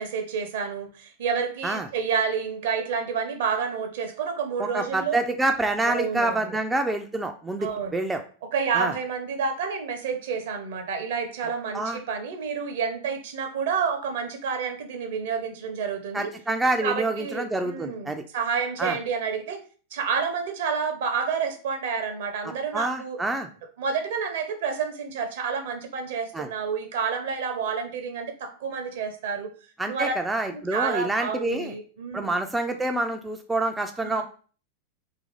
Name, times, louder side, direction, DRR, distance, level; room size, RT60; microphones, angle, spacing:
voice 1, 0.0-5.2 5.8-6.6 7.6-8.0 8.5-16.3 16.8-19.6 19.9-23.2 23.8-29.5 29.9-30.1 30.5-32.3 34.0-34.2, right 6 dB, 55° right, 6 dB, 0.6 m, -29 dB
voice 2, 4.6-8.2 8.7-8.9 11.7-12.0 16.1-18.2 18.8-19.0 22.7-23.5 26.3-26.5 29.8-31.7 32.1-34.2, right 2 dB, 10° right, 4 dB, 0.3 m, -27 dB
2.9 x 2.6 x 3.8 m, 0.39 s
figure-of-eight pair, 90°, 0 cm